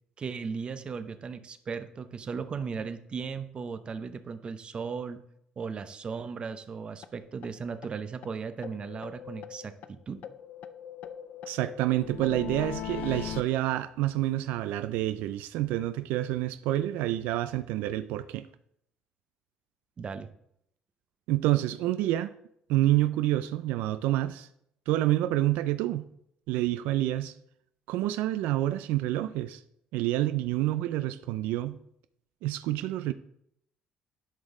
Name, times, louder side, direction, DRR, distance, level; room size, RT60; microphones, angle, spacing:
voice 1, 0.2-5.2 5.6-10.2 20.0-20.3, right 5 dB, 35° right, 0.6 m, -37 dB
sound 1, 7.0-7.1 7.4-7.5 7.8-7.9 8.2-8.3 8.6-9.9 10.2-13.4, left 10 dB, 60° left, 0.5 m, -40 dB
voice 2, 11.5-18.5 21.3-22.3 22.7-24.5 24.9-26.1 26.5-27.3 27.9-29.6 29.9-31.8 32.4-33.1, right 14 dB, 85° right, 0.3 m, -28 dB
11.0 x 5.3 x 3.7 m
cardioid pair, 110°, 3 cm